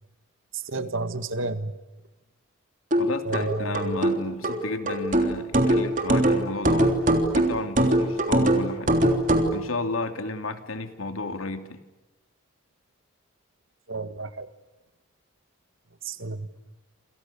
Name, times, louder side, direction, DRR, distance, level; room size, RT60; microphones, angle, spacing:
voice 1, 0.5-1.7 3.3-3.9 13.9-14.5 16.0-16.5, right 3 dB, 70° right, 12 dB, 1.8 m, -31 dB
sound 1, 2.9-9.6, right 1 dB, 40° right, 3.5 m, -22 dB
voice 2, 3.0-6.9 7.3-9.0 9.5-11.8, left 3 dB, 80° left, 8 dB, 2.9 m, -32 dB
28.5 x 28.5 x 7.0 m, 1.1 s
head